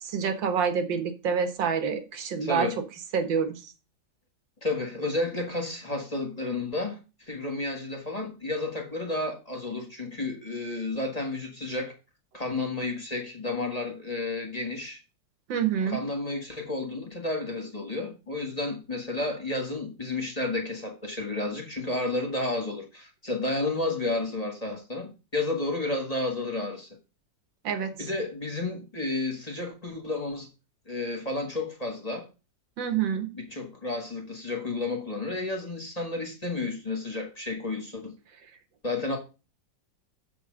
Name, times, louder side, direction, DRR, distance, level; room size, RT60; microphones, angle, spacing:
voice 1, 0.0-2.7 3.1-3.6 15.5-16.0 27.6-28.1 32.8-33.3, right 7 dB, 85° right, 2.0 m, -27 dB
voice 2, 2.4-2.8 4.6-7.0 7.3-11.9 12.3-15.0 15.9-26.9 28.0-30.5 30.9-32.3 33.3-38.2 38.8-39.2, left 2 dB, 20° left, 1.5 m, -31 dB
7.0 x 4.6 x 6.3 m
omnidirectional pair, 2.0 m